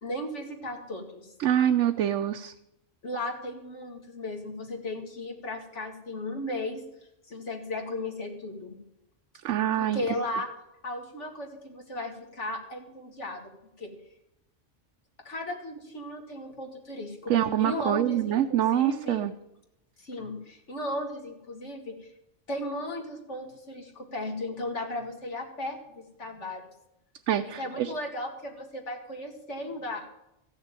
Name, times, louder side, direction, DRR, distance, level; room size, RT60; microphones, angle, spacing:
voice 1, 0.0-1.3 3.0-6.8 7.3-8.8 9.8-10.5 10.8-13.5 13.8-13.9 15.2-17.3 17.6-19.2 20.0-22.1 22.5-26.6 27.6-30.1, left 1 dB, 70° left, 2 dB, 2.6 m, -36 dB
voice 2, 1.4-2.5 9.4-10.0 17.3-19.3 27.3-27.9, right 10 dB, 85° right, 7 dB, 1.0 m, -25 dB
15.0 x 6.7 x 8.9 m, 0.86 s
omnidirectional pair, 1.3 m